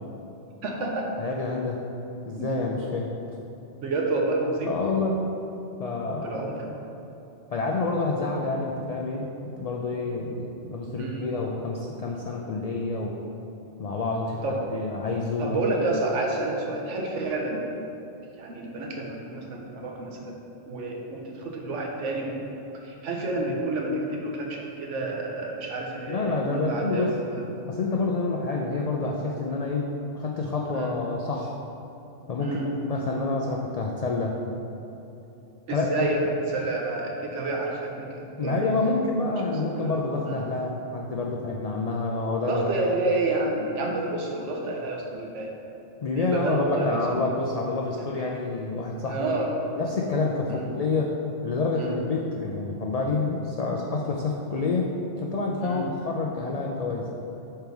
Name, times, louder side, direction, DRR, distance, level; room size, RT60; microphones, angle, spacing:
voice 1, 0.6-1.1 2.4-2.5 3.8-4.7 6.2-6.5 11.0-11.3 14.4-14.6 15.4-17.6 18.4-20.3 20.7-22.4 22.7-27.4 30.7-30.9 32.4-32.7 35.7-36.2 36.5-38.6 39.8-40.0 40.3-40.4 42.5-45.5 46.2-47.0 49.1-49.6 50.5-50.7 51.8-51.9 55.6-55.9, right 2 dB, 85° right, 0 dB, 1.2 m, -29 dB
voice 2, 1.2-1.8 2.2-3.1 4.7-5.2 5.8-6.4 7.5-13.2 13.8-15.6 26.1-27.1 27.7-31.5 32.3-34.4 35.7-36.1 38.4-42.6 46.0-49.3 49.8-51.1 51.4-54.9 55.2-57.1, left 3 dB, 70° left, -1 dB, 0.3 m, -28 dB
5.2 x 4.4 x 4.6 m, 3.0 s
omnidirectional pair, 1.2 m